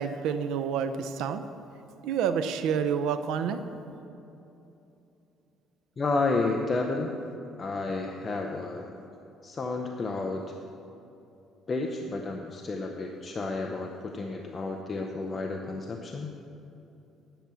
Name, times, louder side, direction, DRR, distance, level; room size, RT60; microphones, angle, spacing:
voice 1, 0.0-1.4 2.0-3.6, right 7 dB, 80° right, 10 dB, 0.6 m, -28 dB
voice 2, 6.0-7.1 7.6-8.9 9.4-10.4 11.7-16.3, left 3 dB, 25° left, 2 dB, 0.6 m, -31 dB
10.0 x 5.9 x 6.9 m, 2.8 s
cardioid pair, 160°, 0 cm